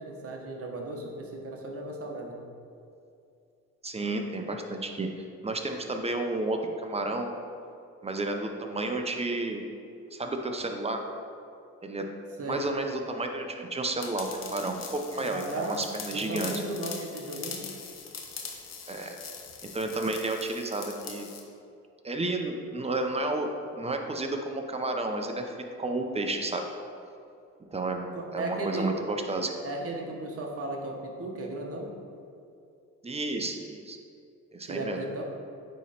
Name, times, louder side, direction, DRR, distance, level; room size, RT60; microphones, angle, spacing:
voice 1, 0.0-2.4 12.4-12.7 15.2-15.8 16.1-17.6 28.1-28.9 29.6-31.9 34.6-35.2, right 2 dB, 50° right, 1 dB, 1.2 m, -35 dB
voice 2, 3.8-5.1 5.4-7.3 8.0-9.6 10.1-11.0 11.8-12.1 12.5-16.5 18.9-19.2 19.6-21.3 22.0-23.5 23.8-25.5 25.8-26.7 27.7-29.5 33.0-34.0 34.5-35.0, right 2 dB, 20° right, 4 dB, 0.7 m, -31 dB
sound 1, 14.0-21.4, left 6 dB, 60° left, 0.9 m, -42 dB
9.2 x 3.2 x 4.3 m, 2.5 s
cardioid pair, 90°, 30 cm